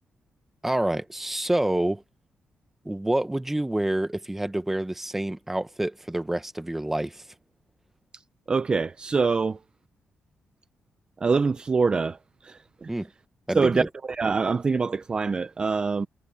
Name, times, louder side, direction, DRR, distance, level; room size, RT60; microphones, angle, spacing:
voice 1, 0.6-2.0 2.8-7.2 12.9-13.1 13.5-13.9, right 1 dB, 10° right, 1.1 m, -27 dB
voice 2, 8.5-9.6 11.2-12.9 13.5-16.1, right 4 dB, 25° right, 0.5 m, -25 dB
wide cardioid pair, 145°, 3 cm